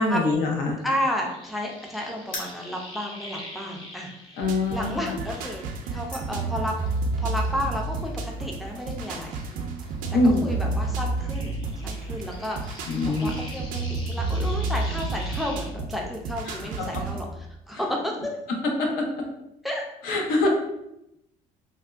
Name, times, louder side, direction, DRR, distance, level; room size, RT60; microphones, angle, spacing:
voice 1, 0.0-0.8 4.4-5.0 10.1-10.5 12.9-13.3 16.5-16.6 18.8-19.0 20.0-20.5, left 2 dB, 90° left, 1 dB, 0.7 m, -23 dB
sound 1, 0.8-6.3 6.7-10.0 10.3-15.7, left 1 dB, 30° left, 0.7 m, -44 dB
voice 2, 0.8-4.1 4.7-6.7 7.2-9.7 10.4-11.5 11.8-12.7 13.0-13.8 14.1-17.3 17.7-18.2 19.6-19.8, equal, ahead, 0 dB, 0.3 m, -32 dB
sound 2, 2.2-7.5, left 1 dB, 60° left, 1.1 m, -43 dB
sound 3, 4.4-17.3, right 3 dB, 70° right, 0.4 m, -31 dB
3.4 x 2.1 x 2.3 m, 0.82 s
cardioid pair, 155°, 14 cm